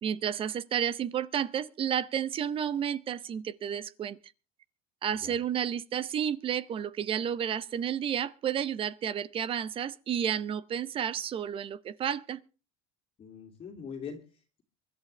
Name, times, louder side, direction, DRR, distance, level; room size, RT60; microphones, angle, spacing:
voice 1, 0.0-4.2 5.0-12.4, right 9 dB, 25° right, 0.7 m, -31 dB
voice 2, 5.1-5.4 13.2-14.6, left 6 dB, 30° left, 2.5 m, -43 dB
24.0 x 11.5 x 3.3 m
cardioid pair, 160°, 20 cm